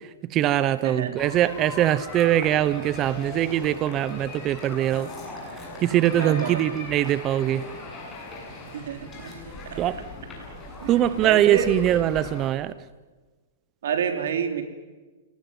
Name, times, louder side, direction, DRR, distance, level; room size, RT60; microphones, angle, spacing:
voice 1, 0.3-5.1 5.8-7.6 9.8-10.0 10.9-12.7, right 12 dB, 25° right, 15 dB, 0.9 m, -22 dB
voice 2, 0.8-1.2 6.1-6.6 8.7-9.4 9.7-9.8 10.8-11.7 13.8-14.6, right 7 dB, 75° right, 6 dB, 3.7 m, -29 dB
sound 1, 1.2-12.5, left 2 dB, 15° left, 7.6 m, -39 dB
29.5 x 19.0 x 9.4 m, 1.3 s
hypercardioid pair, 155°, 0 cm